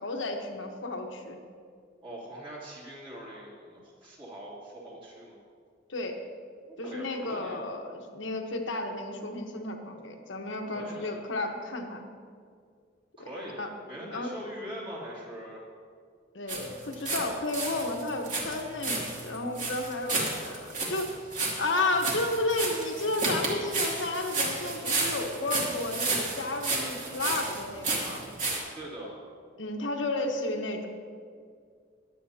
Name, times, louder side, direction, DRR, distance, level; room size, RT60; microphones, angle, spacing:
voice 1, 0.0-1.4 5.9-6.2 6.8-12.0 13.2-13.3 13.6-13.7 14.1-14.3 16.3-21.1 21.6-28.2 29.6-30.9, left 2 dB, 70° left, 3 dB, 1.2 m, -32 dB
voice 2, 2.0-5.4 6.8-7.7 10.7-11.2 13.2-15.6 28.7-29.2, right 1 dB, 25° right, -6 dB, 2.8 m, -42 dB
sound 1, 16.5-17.2 17.5-28.6, right 3 dB, 40° right, 2.5 m, -31 dB
21.5 x 8.4 x 2.9 m, 2.1 s
head